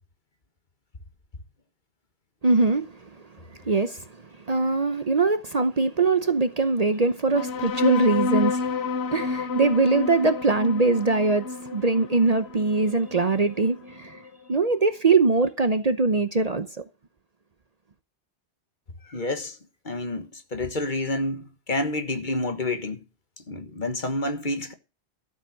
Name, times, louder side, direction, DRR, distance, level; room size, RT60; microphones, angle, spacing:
voice 1, 2.4-3.1 3.6-4.1 4.5-14.2 14.5-16.7, right 3 dB, 40° right, 0.9 m, -22 dB
sound 1, 7.3-14.3, left 4 dB, 70° left, 1.3 m, -30 dB
voice 2, 19.1-19.6 19.8-23.0 23.5-24.7, left 2 dB, 45° left, 1.6 m, -29 dB
13.0 x 7.3 x 6.5 m
omnidirectional pair, 1.1 m